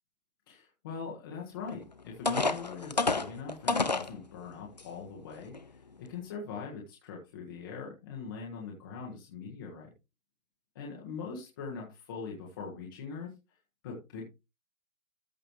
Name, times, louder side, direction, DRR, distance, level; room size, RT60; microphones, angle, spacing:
voice 1, 0.5-9.9 10.7-13.3 13.8-14.2, left 5 dB, 15° left, -3 dB, 1.4 m, -42 dB
sound 1, 1.7-1.8 2.3-4.1 4.8-4.9 5.4-5.6, left 3 dB, 35° left, 0.5 m, -29 dB
14.0 x 5.4 x 3.1 m, 0.26 s
hypercardioid pair, 175°, 40 cm